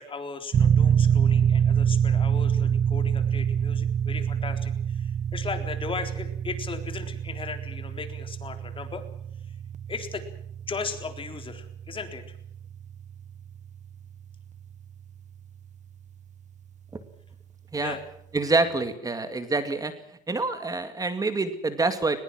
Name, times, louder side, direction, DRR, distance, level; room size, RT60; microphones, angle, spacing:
voice 1, 0.0-9.0 9.9-10.2 10.7-12.2 17.8-18.0, left 5 dB, 30° left, 6 dB, 4.0 m, -37 dB
sound 1, 0.5-14.9, right 8 dB, 45° right, 1.1 m, -26 dB
voice 2, 18.3-19.9 20.3-22.2, right 3 dB, 20° right, 9 dB, 2.2 m, -26 dB
21.5 x 21.0 x 7.6 m, 0.71 s
cardioid pair, 110°, 17 cm